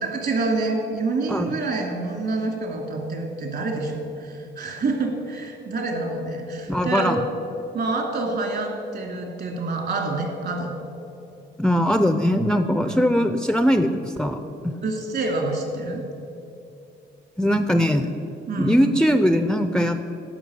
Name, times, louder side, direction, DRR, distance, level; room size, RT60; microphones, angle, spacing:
voice 1, 0.0-7.2 7.7-10.7 12.8-13.1 14.8-16.0 18.5-18.8, right 3 dB, 55° right, 2 dB, 2.5 m, -27 dB
voice 2, 6.7-7.2 11.6-14.4 14.6-14.7 17.4-18.1 18.6-20.0, equal, 5° left, 8 dB, 0.5 m, -20 dB
11.0 x 6.0 x 8.4 m, 2.7 s
cardioid pair, 90°, 20 cm